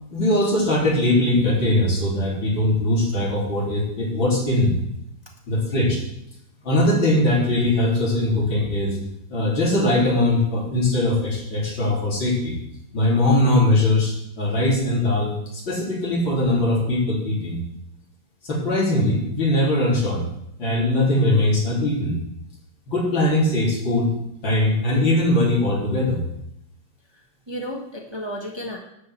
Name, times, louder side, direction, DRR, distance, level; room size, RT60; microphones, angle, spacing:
voice 1, 0.1-4.7 5.5-6.0 6.6-9.0 9.3-12.6 12.9-17.6 18.4-20.2 20.6-22.1 22.9-24.1 24.4-26.2, left 1 dB, 80° left, -4 dB, 4.3 m, -21 dB
voice 2, 27.2-28.8, equal, 15° right, 0 dB, 1.3 m, -33 dB
11.5 x 5.2 x 8.0 m, 0.76 s
omnidirectional pair, 2.1 m